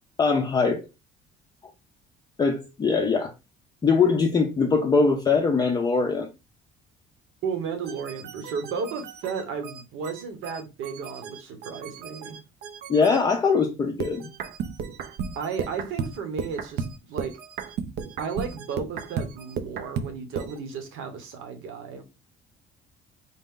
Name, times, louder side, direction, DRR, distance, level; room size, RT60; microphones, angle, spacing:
voice 1, 0.2-0.8 2.4-3.3 3.8-6.3 12.9-14.3, left 4 dB, 20° left, 0.5 m, -22 dB
voice 2, 7.4-12.4 15.3-17.3 18.2-22.0, right 6 dB, 75° right, 1.2 m, -33 dB
sound 1, 7.8-13.2 14.0-20.6, right 6 dB, 50° right, 0.5 m, -35 dB
4.1 x 2.6 x 3.6 m
cardioid pair, 175°, 21 cm